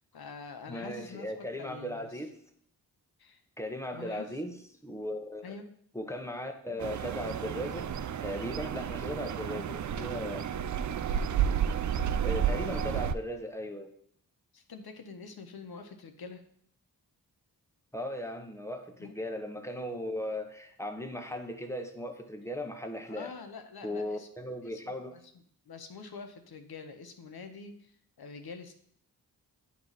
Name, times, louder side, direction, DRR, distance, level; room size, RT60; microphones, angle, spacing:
voice 1, 0.0-2.2 3.2-3.4 3.9-4.3 5.4-5.7 14.5-16.4 19.0-19.1 23.1-24.3 24.6-25.2 25.7-28.7, left 4 dB, 60° left, 6 dB, 1.0 m, -46 dB
voice 2, 0.7-2.4 3.6-4.6 4.8-5.5 5.9-7.9 8.2-10.5 12.2-13.9 17.9-23.3 23.8-25.1, left 1 dB, 5° left, 5 dB, 1.1 m, -37 dB
sound 1, 6.8-13.1, right 8 dB, 45° right, 0.5 m, -31 dB
9.4 x 3.1 x 4.0 m, 0.65 s
cardioid pair, 40°, 42 cm